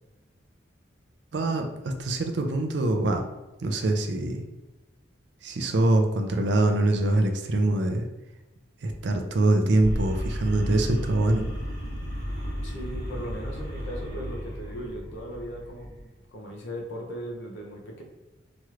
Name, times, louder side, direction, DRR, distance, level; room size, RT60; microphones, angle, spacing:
voice 1, 1.3-3.2 3.6-4.4 5.4-8.1 8.8-11.4, right 2 dB, 65° right, 5 dB, 0.4 m, -24 dB
sound 1, 9.8-16.1, equal, 35° right, 1.2 m, -34 dB
voice 2, 12.6-15.9 16.3-18.0, equal, 75° left, 0 dB, 0.7 m, -37 dB
3.0 x 3.0 x 2.4 m, 1.1 s
head